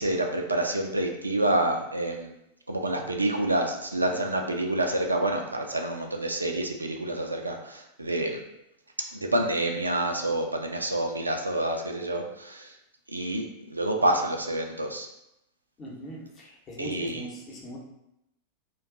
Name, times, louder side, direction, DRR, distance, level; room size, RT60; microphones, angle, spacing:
voice 1, 0.0-2.3 2.7-8.4 9.1-12.7 13.1-15.1 16.8-17.2, right 1 dB, 80° right, 3 dB, 0.4 m, -28 dB
voice 2, 15.8-17.8, equal, 30° left, -2 dB, 0.9 m, -41 dB
2.5 x 2.2 x 3.6 m, 0.85 s
figure-of-eight pair, 90°, 0 cm